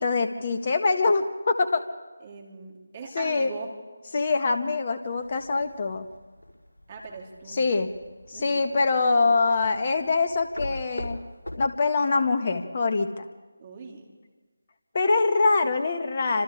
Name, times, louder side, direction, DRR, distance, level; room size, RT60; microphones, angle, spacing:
voice 1, 0.0-1.8 3.1-3.5 4.1-6.1 7.5-7.9 8.3-11.2 11.6-13.3 14.9-16.4, left 3 dB, 35° left, 7 dB, 1.6 m, -24 dB
voice 2, 2.2-3.7 6.9-7.7 8.3-8.8 13.6-14.1, right 4 dB, 30° right, 1 dB, 3.1 m, -41 dB
sound 1, 5.0-11.7, left 1 dB, 70° left, 5.0 m, -42 dB
30.0 x 26.0 x 3.7 m, 1.3 s
figure-of-eight pair, 160°, 0 cm